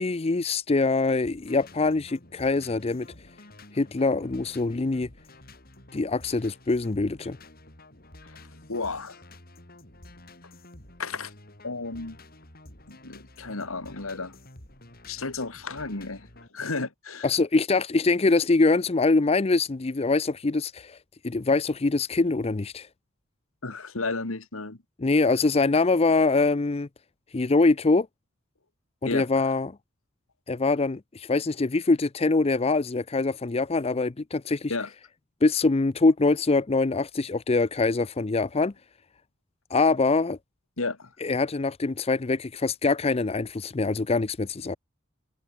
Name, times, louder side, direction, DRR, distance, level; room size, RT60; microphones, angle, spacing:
voice 1, 0.0-3.1 3.7-5.1 5.9-7.4 17.2-21.0 21.2-22.9 25.0-26.9 27.3-28.1 29.0-29.7 30.5-34.7 35.4-38.7 39.7-40.4 41.2-44.8, left 3 dB, 30° left, 0.5 m, -24 dB
sound 1, 1.2-16.5, left 2 dB, 45° left, 5.5 m, -50 dB
voice 2, 8.7-9.2 11.0-11.3 11.6-12.2 12.9-14.3 15.1-17.3 23.6-24.8 29.1-29.3 34.7-34.9 40.8-41.1, left 3 dB, 80° left, 2.2 m, -33 dB
head